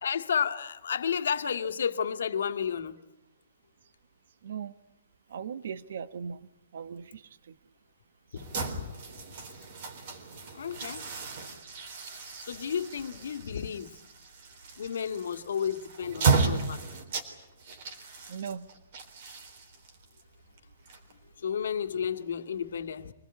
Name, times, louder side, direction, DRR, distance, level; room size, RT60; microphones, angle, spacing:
voice 1, 0.0-3.0 8.3-8.5 8.8-8.9 10.5-11.0 12.4-14.0 14.8-16.8 21.4-23.1, left 7 dB, 70° left, 2.0 m, -32 dB
voice 2, 4.4-4.7 5.3-6.5 6.7-7.2 7.5-7.6 18.3-18.7, right 7 dB, 55° right, 1.2 m, -38 dB
sound 1, 8.4-21.4, right 4 dB, 40° right, 3.8 m, -34 dB
25.5 x 20.0 x 9.7 m
hypercardioid pair, 175°, 0 cm